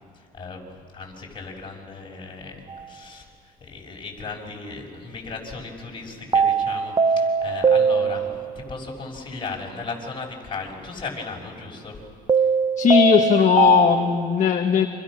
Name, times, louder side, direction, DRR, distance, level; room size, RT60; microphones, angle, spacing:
voice 1, 0.1-0.6 0.9-2.6 2.9-3.3 3.6-11.9 12.4-12.5, left 4 dB, 30° left, 0 dB, 6.2 m, -36 dB
sound 1, 2.7-2.9 6.3-8.7 12.3-14.3, right 5 dB, 25° right, 0.7 m, -21 dB
voice 2, 12.8-14.9, left 7 dB, 45° left, 4 dB, 1.4 m, -18 dB
30.0 x 26.5 x 6.4 m, 2.2 s
cardioid pair, 110°, 17 cm